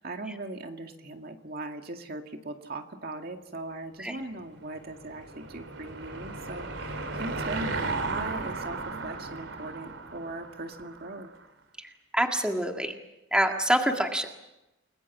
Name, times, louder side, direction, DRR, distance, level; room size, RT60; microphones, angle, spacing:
voice 1, 0.0-11.3, right 2 dB, 50° right, 4 dB, 2.2 m, -39 dB
Car passing by / Engine, 4.4-11.3, right 3 dB, 75° right, 3.2 m, -35 dB
voice 2, 11.8-13.0 13.3-14.3, right 1 dB, 5° right, 3 dB, 1.9 m, -27 dB
29.5 x 21.0 x 7.3 m, 0.95 s
head